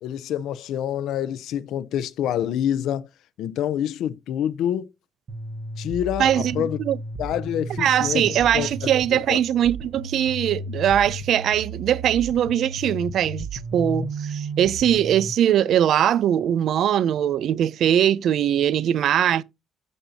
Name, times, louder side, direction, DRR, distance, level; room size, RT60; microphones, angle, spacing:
voice 1, 0.0-3.1 3.4-4.9 5.8-6.8 7.2-8.3 8.5-8.7 9.1-9.4, left 10 dB, 75° left, 0.6 m, -27 dB
sound 1, 5.3-15.3, right 2 dB, 35° right, 1.4 m, -34 dB
voice 2, 6.2-7.0 7.8-19.4, right 10 dB, 60° right, 0.5 m, -21 dB
14.5 x 5.3 x 2.8 m
cardioid pair, 150°, 0 cm